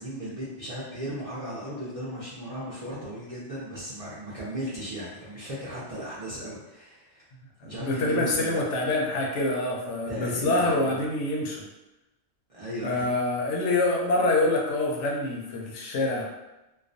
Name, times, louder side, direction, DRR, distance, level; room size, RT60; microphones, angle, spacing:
voice 1, 0.0-7.3 7.6-8.7 10.1-10.9 12.5-13.1, equal, 45° right, -9 dB, 0.4 m, -36 dB
voice 2, 7.8-11.6 12.8-16.3, left 2 dB, 80° left, -1 dB, 0.9 m, -26 dB
2.3 x 2.2 x 2.5 m, 0.98 s
omnidirectional pair, 1.2 m